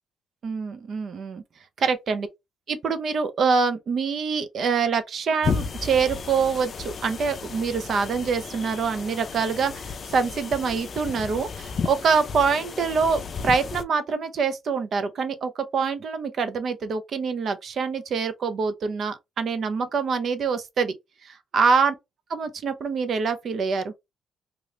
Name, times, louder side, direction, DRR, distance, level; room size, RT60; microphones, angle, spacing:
voice 1, 0.4-1.4 1.8-2.3 2.7-20.9 21.2-21.9 22.3-23.9, right 5 dB, 55° right, 0.6 m, -25 dB
sound 1, 5.4-13.8, left 5 dB, 50° left, 0.4 m, -33 dB
3.0 x 2.4 x 3.3 m
cardioid pair, 90°, 0 cm